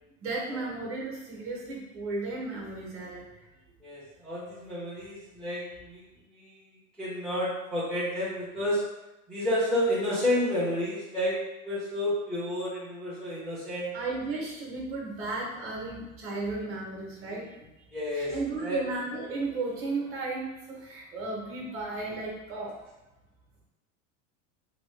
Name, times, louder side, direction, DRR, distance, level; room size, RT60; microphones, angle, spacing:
voice 1, 0.2-3.3 13.9-17.7 18.1-22.8, right 3 dB, 35° right, -3 dB, 1.0 m, -34 dB
voice 2, 3.8-6.0 6.3-6.5 7.0-8.8 9.3-13.9 17.9-18.3 18.6-18.8, left 1 dB, ahead, -10 dB, 0.6 m, -30 dB
2.9 x 2.9 x 3.2 m, 1.0 s
supercardioid pair, 145°, 40 cm